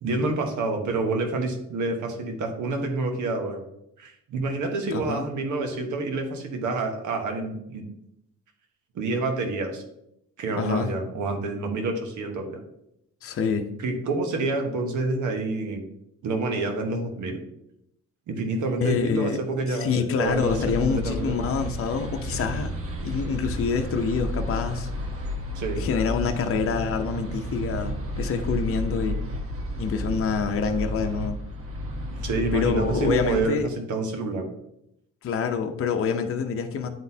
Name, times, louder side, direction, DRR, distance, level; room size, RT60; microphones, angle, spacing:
voice 1, 0.0-3.6 4.0-7.8 8.9-9.8 10.4-12.6 13.8-15.8 16.2-17.4 18.3-21.4 25.5-25.8 32.1-34.5, right 3 dB, 75° right, 4 dB, 1.2 m, -28 dB
voice 2, 4.9-5.2 10.5-10.9 13.2-13.7 18.8-19.4 19.7-22.7 23.0-24.9 25.8-29.2 29.8-31.4 32.5-33.7 35.2-36.9, left 6 dB, 45° left, 5 dB, 0.7 m, -26 dB
sound 1, 20.2-33.5, equal, 50° right, 1.1 m, -32 dB
9.3 x 3.8 x 2.8 m, 0.79 s
cardioid pair, 90°, 30 cm